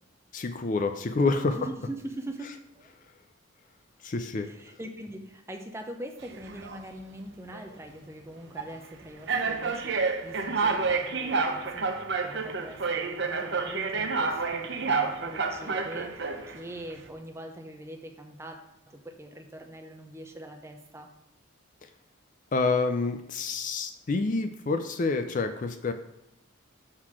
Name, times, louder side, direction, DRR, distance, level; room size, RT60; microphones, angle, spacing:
voice 1, 0.3-1.6 4.0-4.5 22.5-25.9, left 3 dB, 40° left, 8 dB, 0.4 m, -28 dB
voice 2, 1.5-2.9 4.3-11.9 12.2-18.6 18.9-21.1, right 1 dB, 10° right, 4 dB, 0.6 m, -42 dB
sound 1, 6.2-6.8 7.5-7.7 8.6-8.7 9.3-16.6, right 4 dB, 55° right, 0.6 m, -29 dB
6.5 x 3.9 x 6.0 m, 0.83 s
head